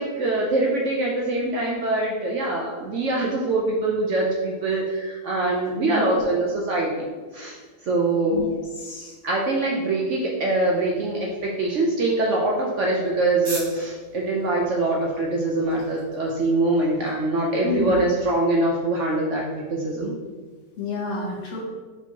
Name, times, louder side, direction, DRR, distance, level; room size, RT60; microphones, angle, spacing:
voice 1, 0.0-7.6 7.8-8.4 9.2-20.1, right 2 dB, 65° right, -2 dB, 0.7 m, -23 dB
voice 2, 5.8-6.2 8.3-8.4 8.8-9.1 17.6-18.0 20.8-21.6, left 2 dB, 55° left, -2 dB, 1.0 m, -29 dB
sound 1, 10.6-17.7, right 2 dB, 35° right, 1.4 m, -43 dB
4.4 x 4.3 x 2.8 m, 1.4 s
omnidirectional pair, 1.7 m